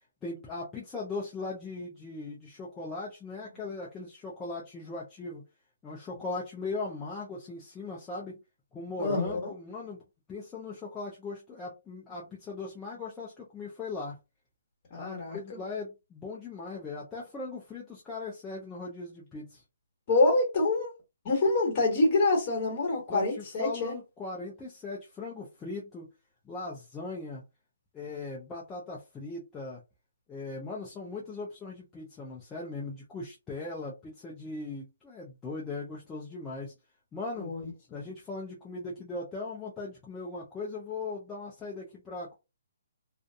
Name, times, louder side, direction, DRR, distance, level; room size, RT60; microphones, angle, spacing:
voice 1, 0.2-5.4 5.8-8.4 8.7-10.0 10.3-14.2 15.0-19.6 23.1-26.1 26.4-27.4 27.9-29.8 30.3-36.7 37.1-37.5 37.9-42.3, left 3 dB, 10° left, 0.5 m, -39 dB
voice 2, 9.0-9.5 14.9-15.6 20.1-20.9 21.2-23.9 37.4-37.6, left 2 dB, 30° left, 1.4 m, -26 dB
2.5 x 2.4 x 2.3 m
hypercardioid pair, 160°, 0 cm